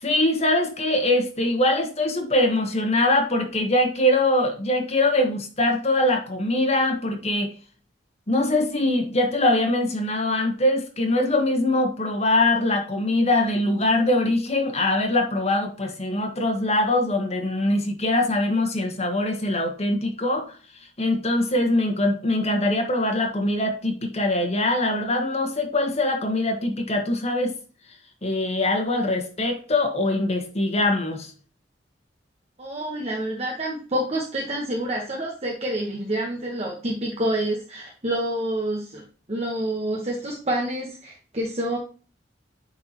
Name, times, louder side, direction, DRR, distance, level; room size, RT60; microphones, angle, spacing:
voice 1, 0.0-7.5 8.3-20.5 21.0-27.5 28.2-31.3, left 1 dB, 35° left, 3 dB, 1.5 m, -23 dB
voice 2, 32.6-41.8, right 1 dB, 35° right, -1 dB, 1.1 m, -28 dB
9.3 x 4.2 x 2.9 m, 0.39 s
head